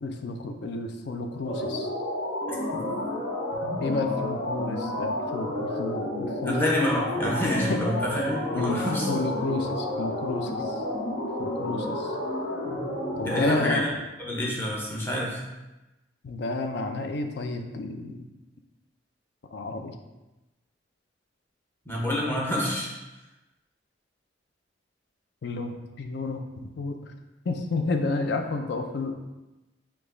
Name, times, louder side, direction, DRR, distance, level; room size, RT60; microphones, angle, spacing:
voice 1, 0.0-1.9 3.8-6.6 7.7-7.8 8.5-8.8 9.1-10.8 11.4-12.2 13.2-13.9 16.2-18.3 19.5-19.9 25.4-27.1 27.5-29.4, left 3 dB, 60° left, 5 dB, 0.4 m, -31 dB
sound 1, 1.4-13.8, left 1 dB, 90° left, 0.8 m, -31 dB
voice 2, 6.4-9.1 13.2-13.9 14.2-15.4 21.9-22.9, left 1 dB, 10° left, -5 dB, 0.9 m, -27 dB
4.9 x 2.3 x 3.8 m, 1.0 s
head